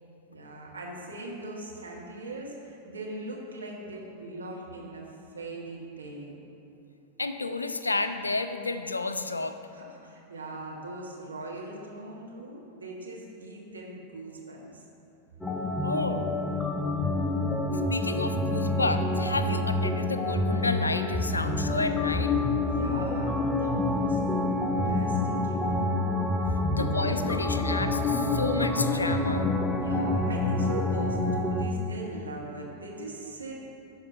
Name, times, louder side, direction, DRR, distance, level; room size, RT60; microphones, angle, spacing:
voice 1, 0.3-6.4 9.7-14.8 22.6-24.6 24.8-25.9 29.8-33.6, right 2 dB, 75° right, -3 dB, 1.5 m, -40 dB
voice 2, 7.2-9.6 15.8-16.3 17.9-22.3 26.7-29.5, left 3 dB, 80° left, 9 dB, 0.4 m, -31 dB
sound 1, 15.4-31.7, left 2 dB, 15° left, 0.6 m, -27 dB
11.5 x 4.4 x 5.5 m, 2.9 s
figure-of-eight pair, 90°, 0 cm